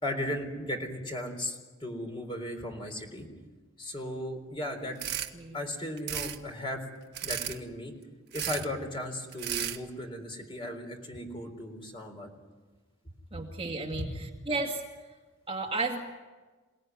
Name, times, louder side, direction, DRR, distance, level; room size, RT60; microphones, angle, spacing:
voice 1, 0.0-3.3 3.8-5.0 5.5-6.8 7.2-7.9 8.3-12.3 14.1-14.2, left 1 dB, 25° left, 3 dB, 4.0 m, -36 dB
sound 1, 5.0-5.3 6.0-6.4 7.1-7.6 8.3-8.7 9.3-9.8, right 11 dB, 50° right, 1.5 m, -34 dB
voice 2, 13.3-14.8 15.5-16.0, right 3 dB, 25° right, 0 dB, 2.2 m, -33 dB
28.0 x 18.5 x 9.6 m, 1.3 s
head